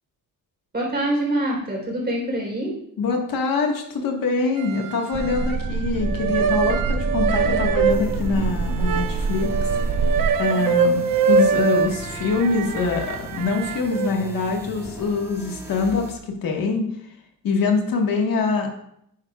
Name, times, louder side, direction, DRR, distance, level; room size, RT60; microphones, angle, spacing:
voice 1, 0.7-2.8, right 1 dB, 30° right, -1 dB, 3.9 m, -25 dB
voice 2, 3.0-9.7 10.4-11.0 11.3-17.1 17.4-18.7, left 4 dB, 75° left, 2 dB, 1.7 m, -24 dB
sound 1, 4.6-5.7 6.0-14.1, right 5 dB, 75° right, 0.8 m, -24 dB
sound 2, 5.1-10.3, right 4 dB, 50° right, 1.5 m, -25 dB
sound 3, 7.9-16.1, equal, 10° right, 1.8 m, -38 dB
11.0 x 9.8 x 2.4 m, 0.73 s
cardioid pair, 135°, 34 cm